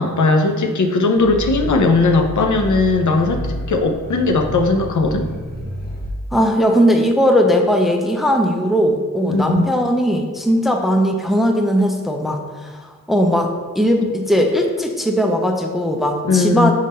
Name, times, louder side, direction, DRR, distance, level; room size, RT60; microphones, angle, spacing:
voice 1, 0.0-5.3 9.3-9.7 16.2-16.7, left 3 dB, 60° left, 5 dB, 0.7 m, -18 dB
Growling, 1.2-6.1, equal, 30° left, 1.1 m, -30 dB
voice 2, 6.3-12.8 13.1-16.7, equal, ahead, 3 dB, 0.6 m, -18 dB
6.4 x 3.6 x 4.2 m, 1.4 s
wide cardioid pair, 95°, 33 cm